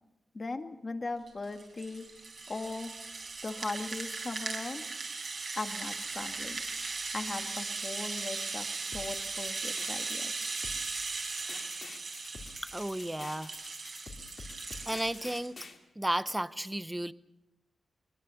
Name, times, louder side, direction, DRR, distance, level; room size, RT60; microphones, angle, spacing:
voice 1, 0.3-2.0 2.5-2.9 3.4-4.8 5.6-6.6 7.1-10.5, left 3 dB, 30° left, 6 dB, 1.9 m, -39 dB
Rattle (instrument), 1.3-15.5, right 3 dB, 45° right, 4.3 m, -38 dB
sound 1, 8.9-15.8, left 4 dB, 50° left, 3.0 m, -48 dB
voice 2, 12.4-13.5 14.9-15.6 16.0-17.1, right 1 dB, 10° right, 15 dB, 0.7 m, -33 dB
22.0 x 21.5 x 7.0 m, 0.93 s
wide cardioid pair, 130°, 0 cm